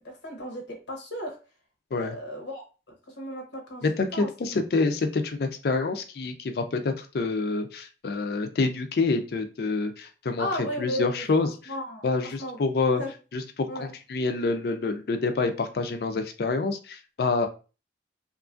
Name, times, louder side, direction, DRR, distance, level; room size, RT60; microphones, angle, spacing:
voice 1, 0.2-0.6 0.9-1.4 1.9-2.6 3.1-3.8 4.1-4.3 10.4-11.2 11.7-12.6 13.0-13.1 13.7-13.9, equal, 90° left, 1 dB, 0.8 m, -34 dB
voice 2, 3.8-10.5 10.8-11.5 12.0-13.0 13.3-17.5, left 3 dB, 60° left, 7 dB, 0.4 m, -27 dB
2.9 x 2.5 x 2.3 m, 0.33 s
head